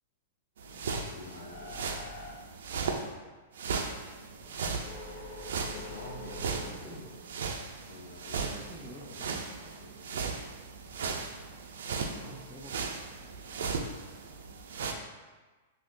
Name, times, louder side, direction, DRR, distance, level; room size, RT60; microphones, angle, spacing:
voice 1, 0.6-1.9 5.6-7.2 7.9-10.3 12.1-12.4, left 1 dB, 75° left, -1 dB, 0.6 m, -48 dB
sound 1, 0.6-3.1 3.5-14.9, right 5 dB, 80° right, 0.3 m, -37 dB
sound 2, 1.5-3.3 3.8-6.7, left 2 dB, 35° left, 0.9 m, -45 dB
voice 2, 4.4-4.8 6.6-7.1 8.6-9.3 12.3-13.3, equal, ahead, -7 dB, 0.3 m, -50 dB
2.7 x 2.5 x 3.5 m, 1.3 s
supercardioid pair, 160°, 0 cm